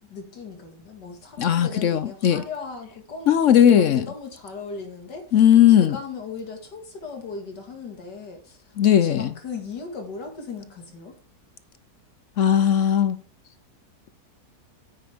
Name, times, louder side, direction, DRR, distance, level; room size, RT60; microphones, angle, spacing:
voice 1, 0.0-5.4 5.7-8.7 9.0-11.2, left 4 dB, 90° left, 2.6 m, -37 dB
voice 2, 1.4-2.4 3.3-4.1 5.3-6.0 8.8-9.3 12.4-13.2, left 10 dB, 65° left, 0.8 m, -17 dB
9.4 x 8.9 x 3.5 m
omnidirectional pair, 1.8 m